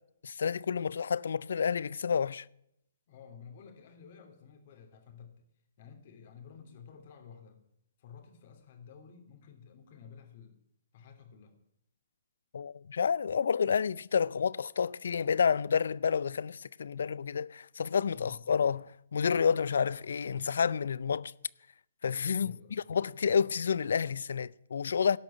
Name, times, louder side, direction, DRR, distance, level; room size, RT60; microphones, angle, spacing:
voice 1, 0.2-2.4 12.5-21.3 22.0-25.2, left 6 dB, 75° left, 0.4 m, -29 dB
voice 2, 3.1-5.3 5.8-7.6 8.0-10.6 10.9-11.5 18.1-18.4 22.3-22.8, left 7 dB, 50° left, 3.1 m, -52 dB
17.0 x 6.1 x 8.6 m
hypercardioid pair, 140°, 0 cm